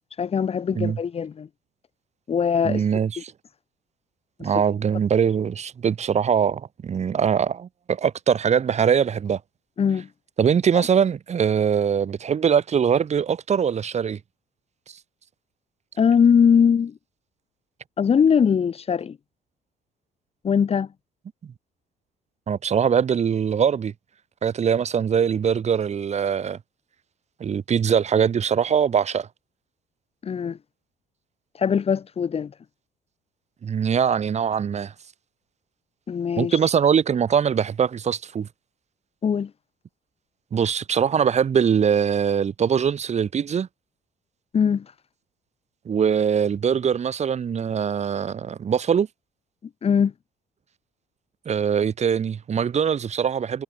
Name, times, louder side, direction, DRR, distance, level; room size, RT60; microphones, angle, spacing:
voice 1, 0.2-1.5 2.3-2.8 3.2-3.3 4.4-4.5 9.8-10.1 10.7-10.9 16.0-16.9 18.0-19.2 20.4-20.9 30.2-30.6 31.6-32.5 36.1-36.6 39.2-39.5 44.5-44.9 49.8-50.1, left 7 dB, 35° left, 1.6 m, -21 dB
voice 2, 2.6-3.3 4.4-9.4 10.4-14.2 21.4-21.5 22.5-23.9 24.4-26.6 27.4-29.3 33.6-34.9 36.4-38.5 40.5-43.7 45.9-49.1 51.5-53.6, right 7 dB, 40° right, 4.5 m, -22 dB
cardioid pair, 110°, 17 cm